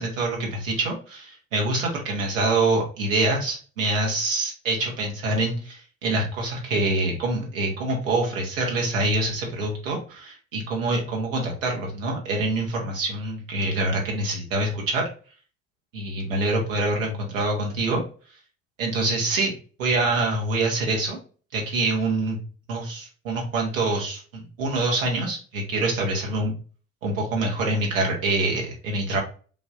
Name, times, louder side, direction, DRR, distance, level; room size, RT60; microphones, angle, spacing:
voice 1, 0.0-15.1 15.9-18.0 18.8-19.5 19.8-21.2 21.5-22.4 22.7-26.5 27.0-29.2, right 2 dB, 85° right, 0 dB, 1.2 m, -25 dB
5.4 x 2.6 x 2.5 m, 0.39 s
hypercardioid pair, 50°, 38 cm